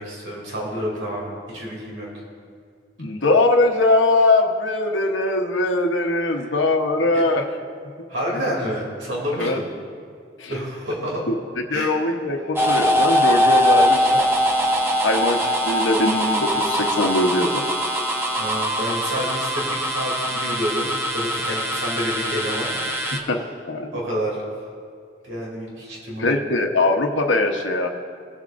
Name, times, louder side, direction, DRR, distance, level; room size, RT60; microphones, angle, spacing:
voice 1, 0.0-2.1 6.3-6.5 7.1-7.2 8.1-9.7 10.5-11.3 11.7-12.0 18.4-22.7 23.0-23.2 23.9-24.6 25.2-26.3, equal, 80° right, -4 dB, 2.8 m, -29 dB
voice 2, 3.0-7.4 9.4-9.6 10.4-10.6 11.3-11.4 11.7-14.2 15.0-17.6 23.3-23.4 23.7-23.9 26.2-27.9, left 2 dB, 85° left, 3 dB, 1.0 m, -21 dB
sound 1, 12.6-23.2, equal, 15° right, 0.8 m, -22 dB
19.5 x 7.4 x 2.6 m, 2.2 s
head